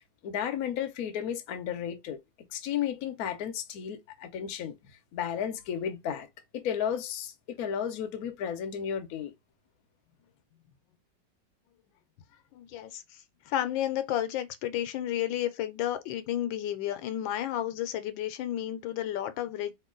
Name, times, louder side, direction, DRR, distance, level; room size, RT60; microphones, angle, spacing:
voice 1, 0.2-2.2 2.5-4.8 5.1-6.3 6.5-9.3, left 8 dB, 65° left, 1.0 m, -33 dB
voice 2, 12.5-19.7, left 12 dB, 80° left, 1.3 m, -32 dB
3.1 x 2.9 x 3.7 m
omnidirectional pair, 2.0 m